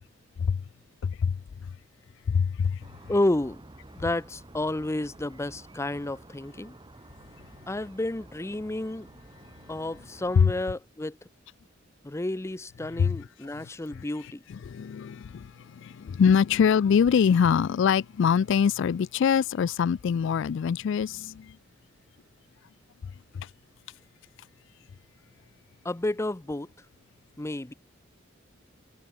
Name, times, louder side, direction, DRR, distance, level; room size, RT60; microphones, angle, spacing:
voice 1, 2.3-2.8 10.4-10.5 13.0-13.1 13.6-13.7 14.5-21.5 23.3-23.5, left 7 dB, 65° left, 0.3 m, -24 dB
sound 1, 2.8-10.4, right 1 dB, 25° right, 1.4 m, -51 dB
voice 2, 3.1-3.6 3.9-6.7 7.7-9.1 9.7-11.2 12.0-14.4 25.8-26.7 27.4-27.7, left 1 dB, 15° left, 0.6 m, -30 dB
head